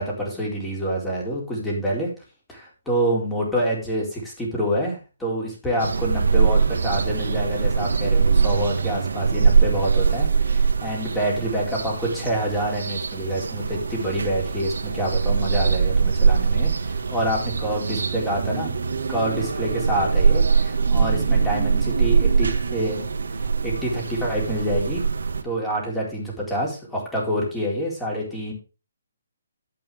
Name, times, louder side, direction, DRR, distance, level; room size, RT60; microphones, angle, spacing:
voice 1, 0.0-2.1 2.5-18.7 19.1-23.0 23.4-25.0 25.4-28.5, right 1 dB, 5° left, -3 dB, 4.1 m, -27 dB
Quiet suburban morning (Brazil), 5.8-25.4, right 5 dB, 75° right, 1.7 m, -22 dB
11.0 x 8.6 x 3.6 m, 0.31 s
hypercardioid pair, 160°, 0 cm